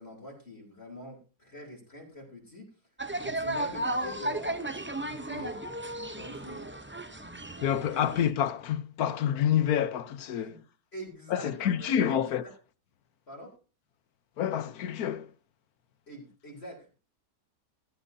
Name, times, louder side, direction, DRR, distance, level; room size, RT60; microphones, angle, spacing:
voice 1, 0.0-2.8 3.2-4.6 5.0-5.6 6.1-6.7 7.8-8.1 10.3-10.6 10.9-12.3 13.3-13.6 16.1-16.9, equal, 40° left, 3.7 m, -45 dB
sound 1, 3.0-8.3, right 1 dB, 15° right, 0.4 m, -34 dB
voice 2, 7.6-10.6 11.3-12.4 14.4-15.3, left 9 dB, 75° left, 1.3 m, -28 dB
15.0 x 13.5 x 2.7 m
omnidirectional pair, 1.6 m